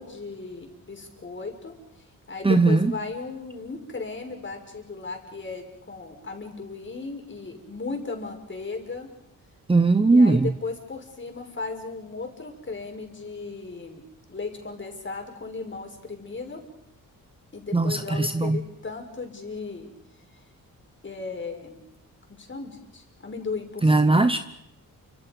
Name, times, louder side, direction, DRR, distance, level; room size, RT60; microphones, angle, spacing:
voice 1, 0.0-9.1 10.1-14.0 14.3-16.6 17.5-19.9 21.0-21.8 22.3-24.3, left 4 dB, 35° left, 3 dB, 5.6 m, -36 dB
voice 2, 2.4-2.9 9.7-10.5 17.7-18.6 23.8-24.4, right 3 dB, 15° right, 10 dB, 0.9 m, -19 dB
29.0 x 26.0 x 5.4 m, 0.80 s
cardioid pair, 105°, 35 cm